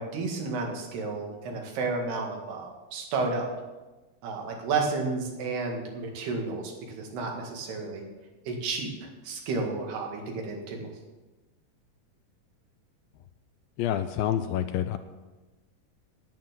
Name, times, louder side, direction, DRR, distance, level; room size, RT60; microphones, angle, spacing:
voice 1, 0.0-3.5 4.2-8.1 8.5-10.9, right 4 dB, 90° right, 1 dB, 4.0 m, -32 dB
voice 2, 13.8-15.0, left 10 dB, 80° left, 10 dB, 2.2 m, -27 dB
10.5 x 9.5 x 7.5 m, 1.2 s
omnidirectional pair, 4.5 m